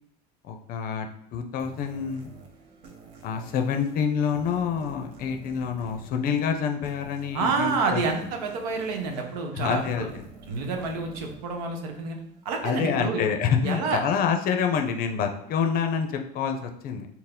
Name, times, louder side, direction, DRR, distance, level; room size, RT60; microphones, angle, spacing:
voice 1, 0.4-2.3 3.2-8.0 9.6-10.2 12.6-17.1, left 7 dB, 45° left, 5 dB, 0.5 m, -27 dB
sound 1, 1.6-12.8, right 3 dB, 55° right, 0.9 m, -49 dB
voice 2, 7.3-10.1 10.5-12.2 12.4-13.2 13.6-14.0, right 4 dB, 85° right, 3 dB, 0.8 m, -28 dB
4.4 x 2.0 x 3.6 m, 0.73 s
supercardioid pair, 120°, 21 cm